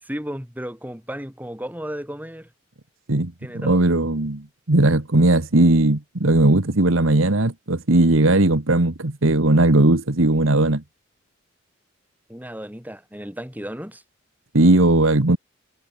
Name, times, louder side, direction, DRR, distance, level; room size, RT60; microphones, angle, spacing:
voice 1, 0.0-2.5 3.4-3.8 12.3-14.0, equal, 10° right, 5.9 m, -34 dB
voice 2, 3.1-10.8 14.5-15.4, right 2 dB, 85° right, 1.7 m, -18 dB
head